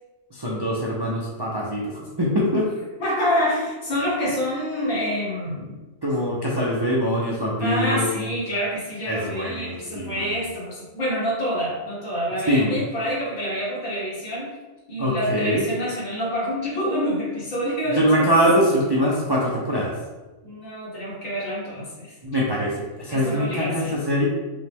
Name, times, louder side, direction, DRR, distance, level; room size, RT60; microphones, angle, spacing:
voice 1, 0.3-2.7 6.0-8.1 9.1-10.3 12.5-12.8 15.0-15.7 17.9-19.9 22.2-24.3, equal, 40° right, -5 dB, 0.3 m, -23 dB
voice 2, 3.0-5.8 7.6-14.5 14.9-18.3 20.4-22.1 23.1-24.0, equal, 75° left, -7 dB, 1.9 m, -27 dB
5.4 x 2.2 x 3.4 m, 1.2 s
omnidirectional pair, 1.4 m